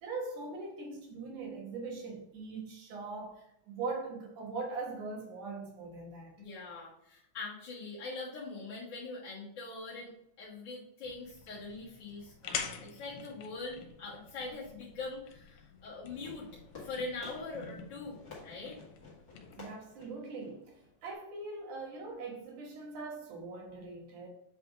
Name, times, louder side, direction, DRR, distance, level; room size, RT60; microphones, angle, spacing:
voice 1, 0.0-6.4 19.6-24.3, right 3 dB, 65° right, 2.5 m, -41 dB
voice 2, 6.4-16.5 16.8-18.8, left 3 dB, 50° left, 1.3 m, -43 dB
sound 1, 11.0-19.6, left 7 dB, 80° left, 2.6 m, -46 dB
Fireworks, 16.1-21.1, left 4 dB, 35° left, 1.5 m, -53 dB
7.7 x 3.5 x 3.7 m
omnidirectional pair, 4.4 m